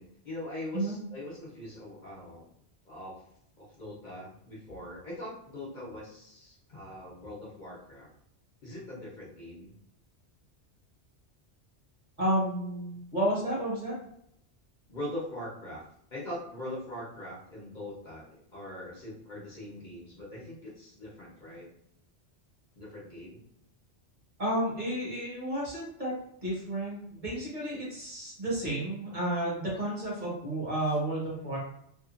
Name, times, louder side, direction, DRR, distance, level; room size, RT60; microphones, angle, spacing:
voice 1, 0.0-2.5 2.8-3.2 3.6-8.1 8.6-9.7 14.9-15.8 16.1-21.6 22.7-23.4, left 1 dB, 45° left, -6 dB, 1.0 m, -42 dB
voice 2, 12.2-13.9 24.4-26.1 26.4-31.6, right 1 dB, 45° right, -6 dB, 1.2 m, -31 dB
2.8 x 2.4 x 2.5 m, 0.74 s
omnidirectional pair, 1.2 m